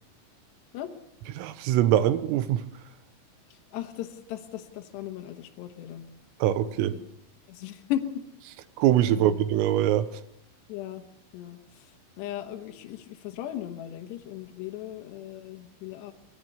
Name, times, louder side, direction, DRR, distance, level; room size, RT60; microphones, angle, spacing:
voice 1, 1.4-2.6 6.4-7.0 8.8-10.1, right 12 dB, 85° right, 3.7 m, -23 dB
voice 2, 3.5-6.1 6.9-7.0 7.5-8.1 9.1-9.4 10.7-11.0 11.3-16.1, left 12 dB, 70° left, 3.0 m, -37 dB
25.0 x 18.5 x 6.8 m
omnidirectional pair, 5.9 m